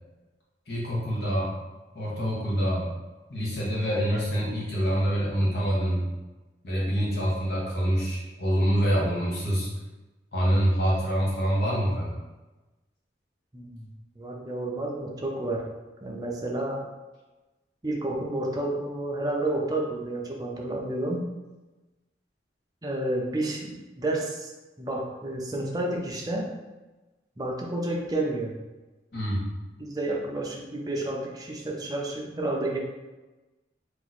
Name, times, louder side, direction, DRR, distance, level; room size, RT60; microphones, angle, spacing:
voice 1, 0.7-1.5 1.9-2.9 3.3-6.0 6.6-9.7 10.3-12.2 29.1-29.5, equal, 60° left, -5 dB, 1.1 m, -26 dB
voice 2, 13.5-13.9 14.2-15.6 16.0-16.8 17.8-21.3 22.8-24.5 24.8-26.5 27.4-28.5 29.8-32.8, right 1 dB, 20° right, -2 dB, 0.5 m, -30 dB
3.0 x 2.5 x 4.0 m, 1.1 s
head